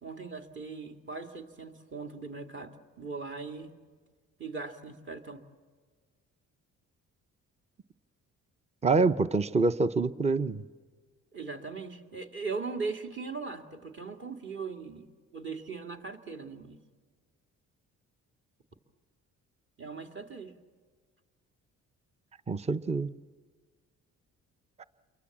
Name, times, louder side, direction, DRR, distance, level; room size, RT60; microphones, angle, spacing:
voice 1, 0.0-3.8 4.4-5.4 11.3-15.1 15.3-16.8 19.8-20.5, right 4 dB, 40° right, 5 dB, 2.3 m, -39 dB
voice 2, 8.8-10.6 22.5-23.1 24.8-24.9, right 3 dB, 20° right, 14 dB, 0.7 m, -26 dB
28.5 x 23.5 x 7.3 m, 1.5 s
cardioid pair, 90°, 30 cm